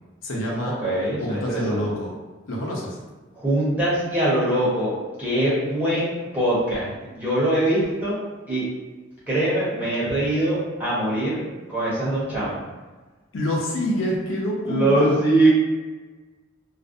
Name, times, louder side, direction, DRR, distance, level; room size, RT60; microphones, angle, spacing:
voice 1, 0.2-0.7 1.2-2.1 2.5-3.0 13.3-15.1, equal, 70° left, -3 dB, 0.5 m, -26 dB
voice 2, 0.8-1.8 3.3-8.2 8.5-8.6 9.3-11.4 11.7-12.6 14.7-15.5, right 1 dB, 10° right, -10 dB, 0.7 m, -22 dB
2.4 x 2.0 x 2.5 m, 1.3 s
head